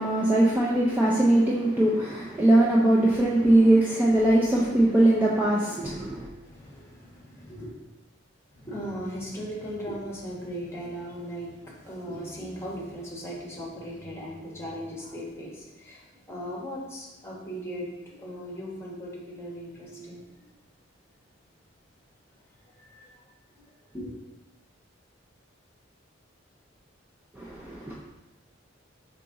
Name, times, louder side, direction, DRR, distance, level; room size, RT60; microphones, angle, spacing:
voice 1, 0.0-6.3 27.4-28.0, right 1 dB, 10° right, -5 dB, 0.4 m, -21 dB
voice 2, 5.9-7.8 8.5-20.5 22.6-23.2 23.5-24.2, equal, 15° left, -5 dB, 1.1 m, -38 dB
5.1 x 2.8 x 3.7 m, 1.0 s
head